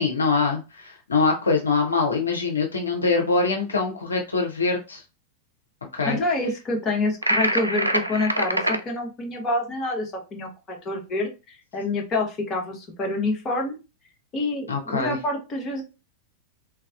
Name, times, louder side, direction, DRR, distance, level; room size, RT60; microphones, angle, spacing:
voice 1, 0.0-5.0 5.9-6.2 14.7-15.2, left 4 dB, 75° left, 1 dB, 0.5 m, -23 dB
voice 2, 6.0-13.8 14.3-15.8, left 2 dB, 30° left, 1 dB, 0.9 m, -27 dB
sound 1, 7.2-8.8, right 1 dB, 85° right, 0.3 m, -24 dB
3.2 x 2.3 x 2.3 m, 0.29 s
figure-of-eight pair, 90°, 0 cm